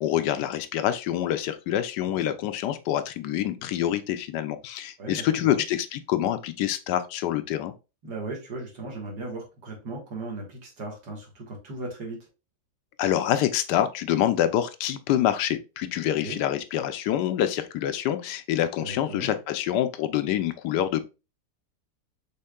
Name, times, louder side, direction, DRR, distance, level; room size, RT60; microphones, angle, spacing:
voice 1, 0.0-7.7 13.0-21.0, left 11 dB, 80° left, 1.2 m, -26 dB
voice 2, 5.0-5.6 8.0-12.2 16.2-16.4 18.8-19.3, right 2 dB, 80° right, 2.1 m, -37 dB
5.5 x 3.5 x 2.2 m
omnidirectional pair, 1.8 m